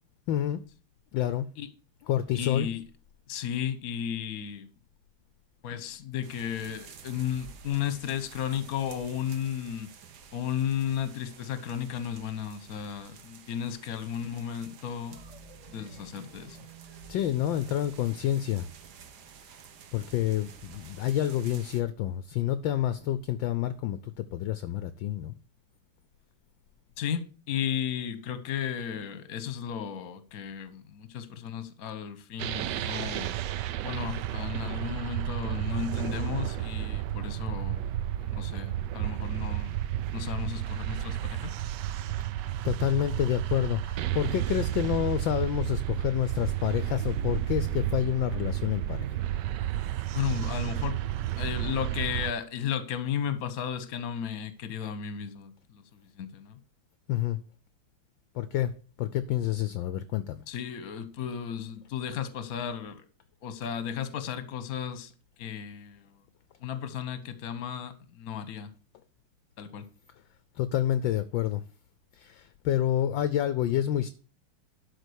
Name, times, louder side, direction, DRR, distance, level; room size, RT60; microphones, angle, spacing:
voice 1, 0.3-0.6 1.1-1.5 2.1-2.7 17.1-18.7 19.9-25.3 42.1-42.2 42.6-49.1 57.1-57.4 58.3-58.7 59.0-60.4 70.6-71.6 72.1-74.1, left 11 dB, 75° left, 1.2 m, -28 dB
voice 2, 2.3-2.8 3.3-4.7 5.6-9.9 10.3-15.2 15.7-16.6 27.0-33.4 33.8-37.8 38.2-39.7 40.1-41.5 50.1-51.0 51.3-56.6 60.5-63.0 63.4-65.1 65.4-66.2 66.6-68.7 69.6-69.8, left 9 dB, 50° left, 1.2 m, -34 dB
sound 1, 6.2-21.8, right 7 dB, 55° right, 1.3 m, -51 dB
sound 2, 15.1-19.8, right 6 dB, 20° right, 1.1 m, -53 dB
sound 3, 32.4-52.3, right 12 dB, 75° right, 1.0 m, -32 dB
12.0 x 4.5 x 6.3 m
omnidirectional pair, 2.4 m